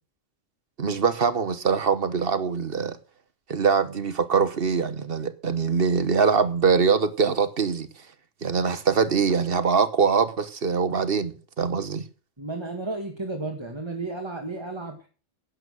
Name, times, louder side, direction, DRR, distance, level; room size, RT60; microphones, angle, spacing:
voice 1, 0.8-3.0 3.5-7.9 8.4-12.0, right 5 dB, 50° right, 1.3 m, -23 dB
voice 2, 12.4-15.1, right 2 dB, 20° right, 1.9 m, -33 dB
11.0 x 9.0 x 6.3 m
omnidirectional pair, 1.3 m